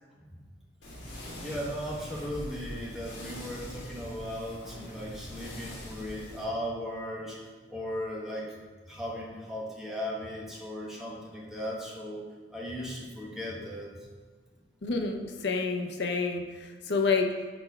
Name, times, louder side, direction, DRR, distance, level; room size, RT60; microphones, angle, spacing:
sound 1, 0.8-6.4, equal, 90° left, 1.5 m, -43 dB
voice 1, 1.1-7.4 7.7-8.5 8.9-12.2 12.5-14.1, equal, ahead, -5 dB, 1.1 m, -37 dB
voice 2, 14.8-17.3, left 4 dB, 70° left, 3 dB, 0.7 m, -29 dB
4.4 x 4.2 x 5.5 m, 1.4 s
head